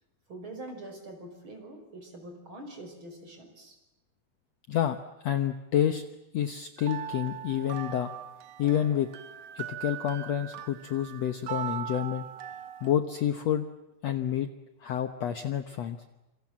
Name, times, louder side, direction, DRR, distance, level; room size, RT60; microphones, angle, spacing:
voice 1, 0.3-3.8, right 1 dB, 30° right, 5 dB, 5.9 m, -44 dB
voice 2, 5.2-6.0 6.3-8.1 8.6-9.1 9.5-12.3 12.8-13.6 14.0-14.5 14.8-16.0, left 10 dB, 75° left, 9 dB, 1.5 m, -28 dB
sound 1, 6.8-13.0, right 10 dB, 70° right, 1.9 m, -40 dB
27.5 x 26.5 x 7.5 m, 0.99 s
omnidirectional pair, 4.7 m